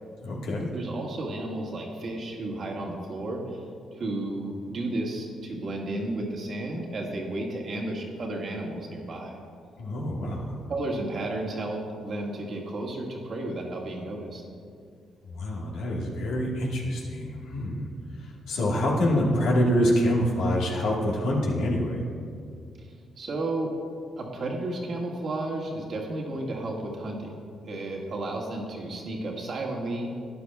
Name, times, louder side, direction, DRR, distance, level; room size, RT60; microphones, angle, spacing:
voice 1, 0.2-0.7 9.8-10.5 15.3-17.9 18.5-22.0, equal, 80° left, -3 dB, 1.6 m, -26 dB
voice 2, 0.7-3.4 4.0-9.4 10.7-14.4 22.8-22.9 23.2-23.7 24.2-27.3 27.6-30.1, right 2 dB, 55° right, -1 dB, 1.8 m, -32 dB
13.0 x 9.6 x 2.4 m, 2.3 s
supercardioid pair, 50°, 0 cm